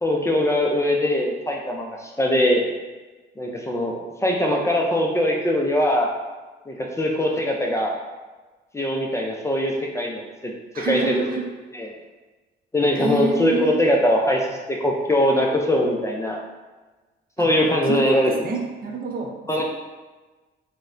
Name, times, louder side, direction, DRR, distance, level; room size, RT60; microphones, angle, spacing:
voice 1, 0.0-2.7 3.4-6.1 6.7-7.9 8.7-10.5 10.8-11.2 11.7-11.9 12.7-14.4 14.7-16.4 17.4-18.3 19.5-19.6, left 1 dB, 15° left, -1 dB, 0.4 m, -21 dB
voice 2, 10.7-11.4 13.0-13.7 17.4-19.6, right 3 dB, 50° right, 1 dB, 0.5 m, -28 dB
3.9 x 2.1 x 2.5 m, 1.2 s
cardioid pair, 90°, 20 cm